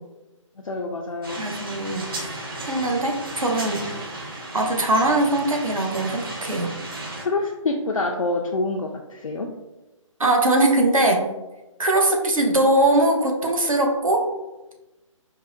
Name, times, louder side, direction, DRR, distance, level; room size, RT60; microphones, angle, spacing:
voice 1, 0.6-1.4 7.2-9.5, left 2 dB, 80° left, 1 dB, 0.4 m, -26 dB
sound 1, 1.2-7.2, right 1 dB, 45° right, 0.7 m, -34 dB
voice 2, 1.4-3.8 4.5-6.7 10.2-11.3 11.8-14.2, right 1 dB, 80° right, 2 dB, 0.8 m, -21 dB
4.6 x 2.0 x 2.5 m, 1.0 s
figure-of-eight pair, 140°, 17 cm